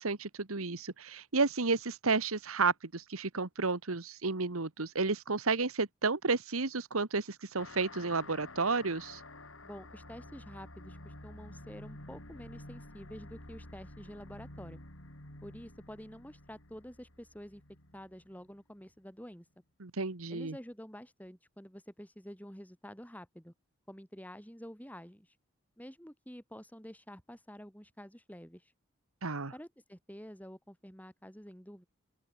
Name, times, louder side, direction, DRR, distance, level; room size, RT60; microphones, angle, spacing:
voice 1, 0.0-9.2 19.8-20.6 29.2-29.5, right 4 dB, 80° right, 1.5 m, -32 dB
sound 1, 7.6-18.5, left 1 dB, 65° left, 6.0 m, -50 dB
voice 2, 9.6-14.8 15.4-17.6 17.9-19.5 20.3-23.5 23.9-25.3 25.8-28.7 29.5-31.8, equal, 5° left, 5.8 m, -49 dB
open air
head